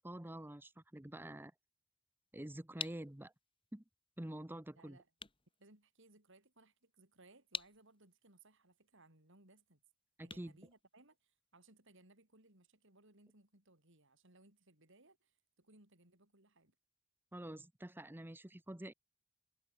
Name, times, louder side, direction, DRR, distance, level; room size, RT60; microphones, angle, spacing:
voice 1, 0.0-1.5 2.3-3.3 3.7-3.8 4.2-5.0 10.2-10.5 17.3-18.9, right 1 dB, 10° right, 0.9 m, -47 dB
sound 1, 2.8-11.5, left 6 dB, 25° left, 5.8 m, -51 dB
voice 2, 4.7-5.1 5.6-9.8 10.2-16.8, right 2 dB, 65° right, 7.5 m, -65 dB
head